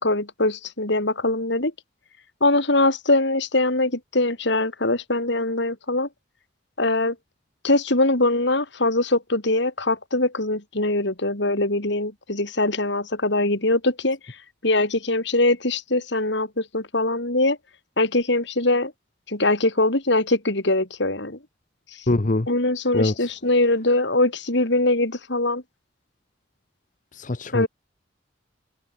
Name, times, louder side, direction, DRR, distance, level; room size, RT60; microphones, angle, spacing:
voice 1, 0.0-1.7 2.4-6.1 6.8-7.2 7.6-14.4 14.6-17.6 18.0-18.9 19.3-21.4 22.5-25.6 27.5-27.7, left 2 dB, 65° left, 4.2 m, -22 dB
voice 2, 22.1-22.5 22.9-23.1 27.1-27.7, left 2 dB, 40° left, 0.9 m, -22 dB
head